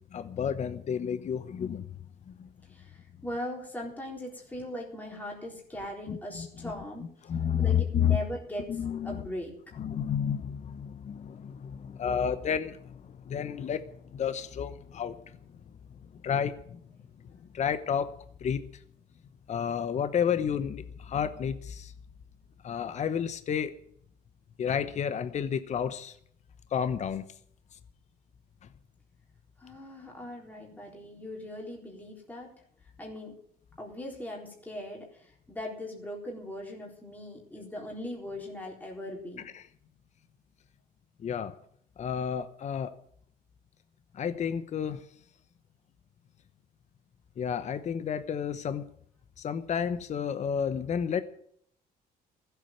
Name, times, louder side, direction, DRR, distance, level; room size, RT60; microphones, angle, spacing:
voice 1, 0.1-1.9 2.3-2.5 6.1-6.7 7.2-8.2 8.7-9.3 9.8-15.4 16.1-16.8 17.5-18.1 18.4-18.8 19.5-21.9 22.6-23.7 24.6-26.2 26.7-27.2 39.5-39.6 41.2-41.5 42.0-42.9 44.1-45.1 47.4-48.9 49.4-51.2, left 8 dB, 45° left, 1.0 m, -31 dB
voice 2, 2.7-7.1 7.6-8.7 9.0-9.5 29.6-32.5 33.0-33.3 33.8-39.4, left 1 dB, 10° left, 4.0 m, -39 dB
15.0 x 8.3 x 9.4 m
cardioid pair, 110°, 17 cm